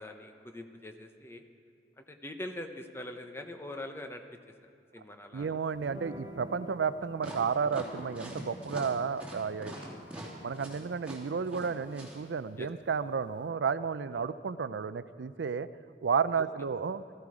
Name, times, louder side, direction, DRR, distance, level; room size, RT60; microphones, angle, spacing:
voice 1, 0.0-1.4 2.0-4.2 4.9-5.5 9.7-10.0 12.6-12.7 14.1-14.3, left 1 dB, 15° left, 5 dB, 0.8 m, -43 dB
voice 2, 5.3-9.7 10.4-15.7 16.0-17.0, right 6 dB, 80° right, 14 dB, 0.4 m, -32 dB
sound 1, 5.7-13.5, right 1 dB, 25° right, 0.9 m, -51 dB
sound 2, 7.2-12.2, right 1 dB, 5° right, 2.7 m, -43 dB
16.0 x 14.0 x 4.9 m, 2.5 s
head